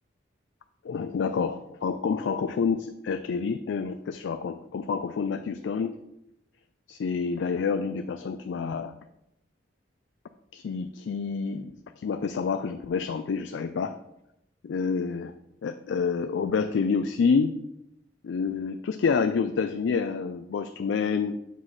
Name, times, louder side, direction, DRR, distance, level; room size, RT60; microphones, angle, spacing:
voice 1, 0.8-6.0 6.9-8.9 10.5-14.0 14.6-15.3 15.6-17.6 18.2-21.4, left 5 dB, 75° left, 9 dB, 0.4 m, -28 dB
7.3 x 3.2 x 5.6 m, 0.84 s
head